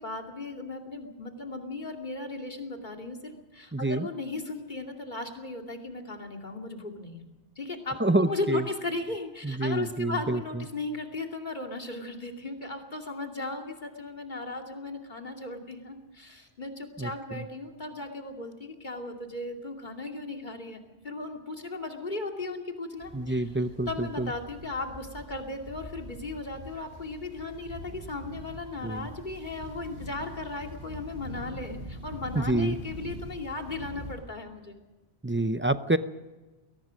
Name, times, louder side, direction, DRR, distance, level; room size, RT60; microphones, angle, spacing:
voice 1, 0.0-7.2 7.6-23.5 23.9-34.8, left 2 dB, 45° left, 3 dB, 2.7 m, -36 dB
voice 2, 3.7-4.1 8.0-8.6 9.4-10.6 17.0-17.4 23.1-24.3 28.8-29.1 32.3-32.8 35.2-36.0, right 2 dB, 15° right, 12 dB, 0.6 m, -27 dB
sound 1, 23.0-34.2, equal, 55° right, 7.5 m, -44 dB
22.0 x 18.5 x 6.4 m, 1.2 s
omnidirectional pair, 1.1 m